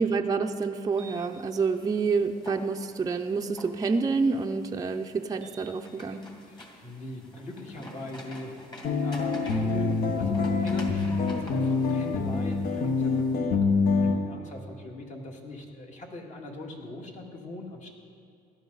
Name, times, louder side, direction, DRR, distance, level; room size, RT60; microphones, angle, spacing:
voice 1, 0.0-6.2, right 4 dB, 20° right, 4 dB, 0.5 m, -28 dB
sound 1, 0.9-13.4, equal, 25° left, 2.4 m, -47 dB
voice 2, 6.4-8.7 9.0-13.5 13.8-17.9, left 2 dB, 45° left, 0 dB, 2.1 m, -41 dB
sound 2, 8.8-14.2, left 4 dB, 60° left, 1.2 m, -26 dB
17.0 x 12.0 x 4.0 m, 2.4 s
cardioid pair, 110°, 17 cm